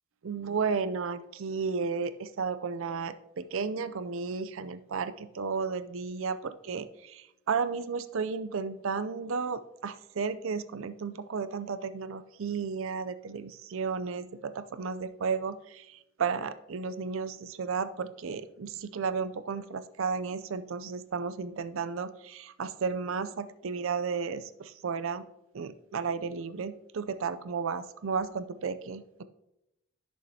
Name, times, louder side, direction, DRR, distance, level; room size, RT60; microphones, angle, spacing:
voice 1, 0.2-25.2 25.5-29.2, right 5 dB, 60° right, 13 dB, 0.5 m, -33 dB
11.5 x 6.4 x 2.8 m, 0.87 s
head